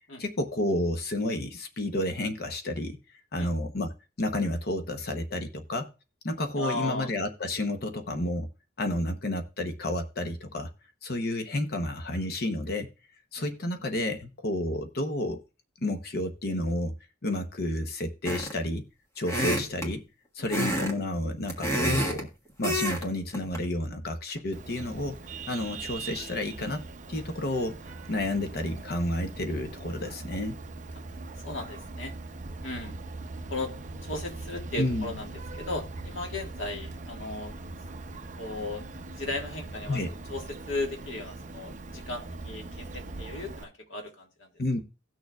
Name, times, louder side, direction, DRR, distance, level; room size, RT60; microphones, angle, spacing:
voice 1, 0.2-3.0 3.3-3.9 4.2-5.9 6.2-8.5 8.8-10.7 11.0-12.9 13.3-15.4 15.8-16.9 17.2-18.9 19.2-20.0 20.3-22.3 22.6-25.1 25.5-26.8 27.1-27.8 28.1-30.6 34.8-35.2 39.9-40.1 44.6-44.8, left 1 dB, 50° left, 6 dB, 0.8 m, -30 dB
voice 2, 6.6-7.1 13.4-13.5 19.3-19.4 20.4-20.5 31.4-32.1 32.6-32.9 33.5-33.7 34.0-35.3 35.6-37.5 38.4-38.8 39.2-40.0 40.3-44.5, left 2 dB, 70° left, 1 dB, 1.7 m, -36 dB
sound 1, 18.2-18.7 19.2-19.9 20.5-20.9 21.2-22.2 22.6-23.0 23.3-23.6, equal, 15° left, 1.6 m, -28 dB
Vehicle horn car horn honking, 24.5-43.6, right 3 dB, 40° right, 0.7 m, -41 dB
17.5 x 6.5 x 2.3 m, 0.31 s
head